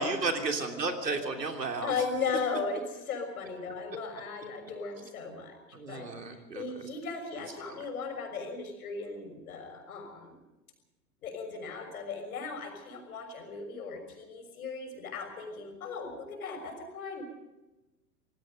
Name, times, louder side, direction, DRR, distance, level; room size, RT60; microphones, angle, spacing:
voice 1, 0.0-1.9 5.7-6.9 7.6-7.8, right 3 dB, 75° right, 4 dB, 3.1 m, -33 dB
voice 2, 1.8-5.6 5.9-10.4 11.2-17.2, left 4 dB, 60° left, 5 dB, 6.4 m, -37 dB
26.5 x 19.5 x 5.4 m, 1.0 s
figure-of-eight pair, 100°, 49 cm